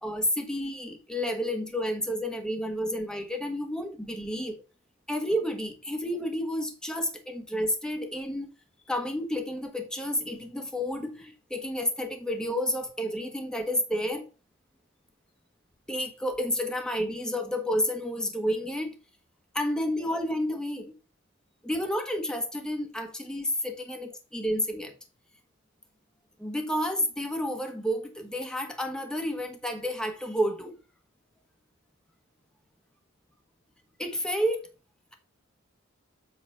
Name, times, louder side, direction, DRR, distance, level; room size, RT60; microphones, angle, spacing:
voice 1, 0.0-4.6 5.1-8.5 8.9-14.2 15.9-18.9 19.5-20.9 21.6-24.9 26.4-30.7 34.0-34.7, equal, 5° left, 1.2 m, -30 dB
7.6 x 4.0 x 5.6 m
head